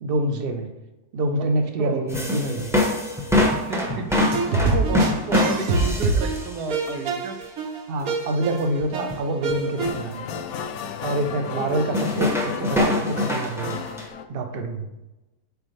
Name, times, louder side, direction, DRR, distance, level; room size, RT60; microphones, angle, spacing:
voice 1, 0.0-0.7 1.1-2.7 3.9-4.0 7.9-10.3 11.0-13.8 14.3-14.9, right 1 dB, 50° right, 6 dB, 0.8 m, -26 dB
sound 1, 2.1-6.6 6.9-7.0 7.4-7.5 8.8-9.2 9.5-9.6 9.9-10.0 11.9-14.0, left 1 dB, ahead, 0.7 m, -24 dB
voice 2, 3.6-7.4 11.4-12.3, right 4 dB, 85° right, 5 dB, 1.4 m, -32 dB
sound 2, 4.1-9.9, right 3 dB, 65° right, 1.4 m, -25 dB
sound 3, 8.9-9.0 9.5-14.3, left 6 dB, 70° left, 0.9 m, -33 dB
8.0 x 4.9 x 3.3 m, 1.0 s
omnidirectional pair, 1.7 m